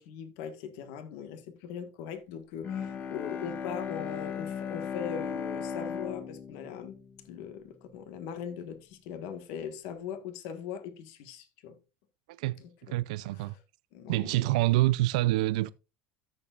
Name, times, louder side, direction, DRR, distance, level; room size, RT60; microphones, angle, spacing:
voice 1, 0.0-7.0 7.3-11.8 12.6-13.0 13.3-13.5 13.9-14.6, left 8 dB, 65° left, 1.6 m, -40 dB
Bowed string instrument, 2.6-7.9, left 7 dB, 40° left, 1.5 m, -37 dB
voice 2, 12.4-13.6 14.1-15.7, right 18 dB, 75° right, 0.4 m, -27 dB
14.0 x 6.9 x 2.5 m
supercardioid pair, 105°, 4 cm